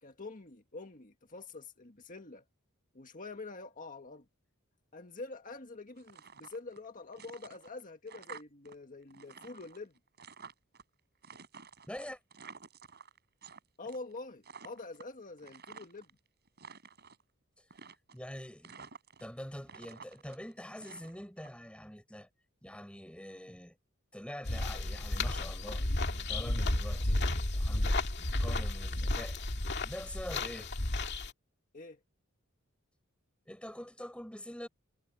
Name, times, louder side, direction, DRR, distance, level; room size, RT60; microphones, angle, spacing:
voice 1, 0.0-2.4 2.9-4.3 4.9-9.9 13.8-16.1 31.7-32.0, left 3 dB, 40° left, 1.7 m, -46 dB
sound 1, 6.0-6.8 7.1-8.7 9.0-10.8 11.2-13.6 13.9-14.2 14.4-16.1 16.5-17.2 17.7-18.3 18.6-19.4 19.7-21.5, right 6 dB, 50° right, 5.2 m, -51 dB
voice 2, 11.9-12.2 18.1-18.9 19.2-22.3 22.6-23.8 24.1-25.8 26.1-29.4 29.8-30.7 33.5-34.7, equal, 5° left, 6.4 m, -45 dB
sound 2, 24.5-31.3, left 2 dB, 55° left, 2.1 m, -32 dB
head